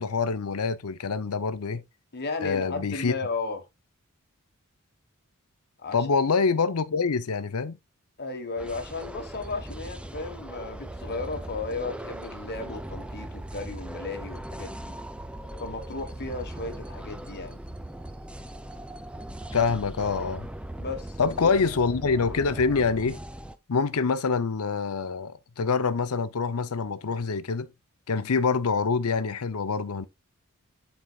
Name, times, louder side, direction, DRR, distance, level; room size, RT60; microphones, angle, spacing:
voice 1, 0.0-1.8 2.4-3.1 5.9-7.8 19.5-20.5 21.2-23.2 23.7-27.7 28.1-30.0, left 5 dB, 75° left, 0.7 m, -26 dB
voice 2, 2.1-3.7 5.8-6.1 8.2-14.9 15.6-17.6 20.8-21.5, left 3 dB, 50° left, 1.4 m, -35 dB
sound 1, 8.6-23.6, right 1 dB, 5° right, 0.5 m, -39 dB
11.5 x 4.4 x 2.4 m
head